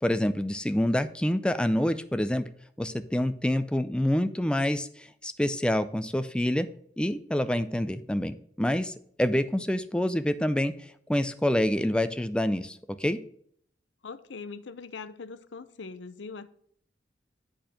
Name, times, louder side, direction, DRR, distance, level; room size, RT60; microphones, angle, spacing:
voice 1, 0.0-2.5 2.8-6.7 7.0-10.7 11.1-13.2, left 1 dB, 5° left, 11 dB, 0.4 m, -27 dB
voice 2, 14.0-16.5, left 4 dB, 85° left, 13 dB, 0.6 m, -41 dB
7.9 x 4.4 x 6.2 m, 0.62 s
head